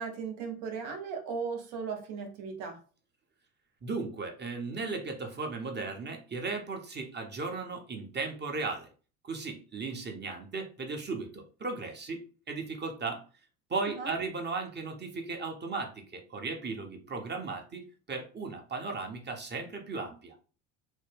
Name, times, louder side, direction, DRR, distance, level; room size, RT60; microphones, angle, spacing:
voice 1, 0.0-2.8 13.9-14.1, right 5 dB, 60° right, 4 dB, 1.1 m, -37 dB
voice 2, 3.8-8.9 9.2-13.2 13.7-20.3, right 4 dB, 25° right, 3 dB, 0.9 m, -36 dB
3.1 x 2.1 x 3.4 m, 0.37 s
hypercardioid pair, 70°, 43 cm